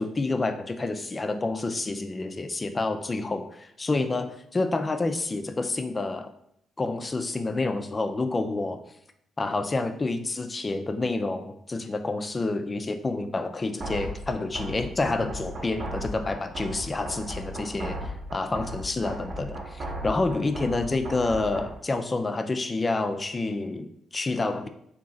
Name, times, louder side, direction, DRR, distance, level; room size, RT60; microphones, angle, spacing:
voice 1, 0.0-6.3 6.8-8.8 9.4-24.7, left 3 dB, 25° left, 8 dB, 0.4 m, -28 dB
sound 1, 13.8-21.8, equal, 45° right, 0.8 m, -36 dB
3.9 x 2.8 x 3.8 m, 0.73 s
cardioid pair, 115°, 0 cm